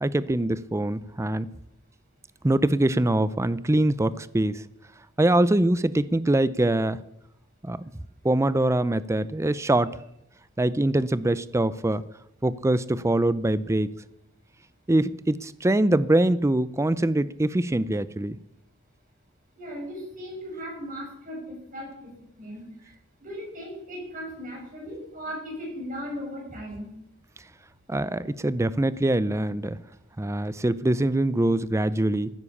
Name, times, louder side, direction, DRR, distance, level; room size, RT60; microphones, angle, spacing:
voice 1, 0.0-1.5 2.4-4.6 5.2-7.0 7.6-7.8 8.2-10.0 10.6-12.0 12.4-13.9 14.9-18.4 27.9-29.8 30.2-32.3, right 1 dB, 15° right, 16 dB, 0.5 m, -23 dB
voice 2, 19.6-21.9 22.4-22.9 23.2-26.9, equal, 45° right, -3 dB, 7.9 m, -37 dB
15.0 x 9.7 x 7.1 m, 0.80 s
head